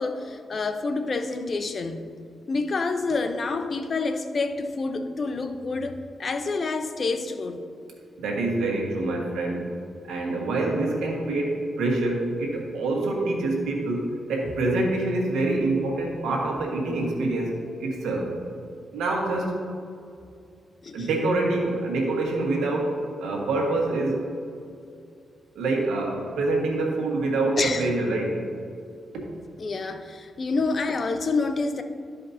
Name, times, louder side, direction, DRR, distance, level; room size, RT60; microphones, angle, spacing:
voice 1, 0.0-2.1 2.5-7.6 20.8-21.1 27.6-27.8 29.6-31.8, left 3 dB, 50° left, 8 dB, 0.6 m, -28 dB
voice 2, 8.2-9.7 10.1-18.3 18.9-19.5 20.9-24.2 25.5-28.4 29.1-29.2, right 2 dB, 90° right, -1 dB, 1.5 m, -26 dB
12.5 x 5.0 x 2.7 m, 2.5 s
cardioid pair, 65°, 0 cm